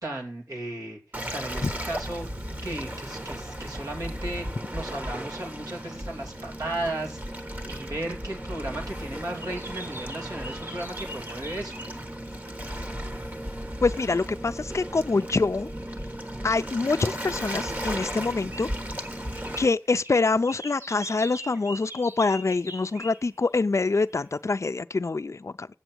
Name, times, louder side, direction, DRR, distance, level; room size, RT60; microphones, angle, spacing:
voice 1, 0.0-1.0 1.3-2.3 2.6-7.4 7.7-11.8, right 1 dB, 85° right, 2.6 m, -35 dB
Waves surf, 1.1-19.7, equal, 30° right, 1.3 m, -35 dB
sound 1, 9.4-12.7 13.1-23.5 23.8-24.3, equal, 50° right, 2.9 m, -45 dB
voice 2, 13.8-15.7 16.4-18.7 19.6-25.7, left 3 dB, 55° left, 0.4 m, -25 dB
7.9 x 7.0 x 6.0 m
wide cardioid pair, 50°, 6 cm